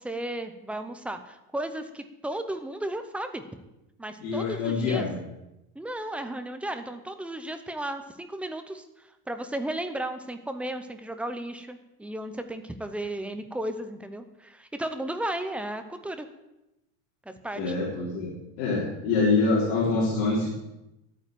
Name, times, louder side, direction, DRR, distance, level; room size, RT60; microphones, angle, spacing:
voice 1, 0.0-3.4 4.0-5.1 5.7-16.3 17.3-17.8, right 1 dB, 5° right, 8 dB, 0.6 m, -34 dB
voice 2, 4.2-5.2 17.6-18.3 18.6-20.5, left 3 dB, 60° left, -5 dB, 4.1 m, -25 dB
11.5 x 9.1 x 9.0 m, 0.92 s
supercardioid pair, 165°, 41 cm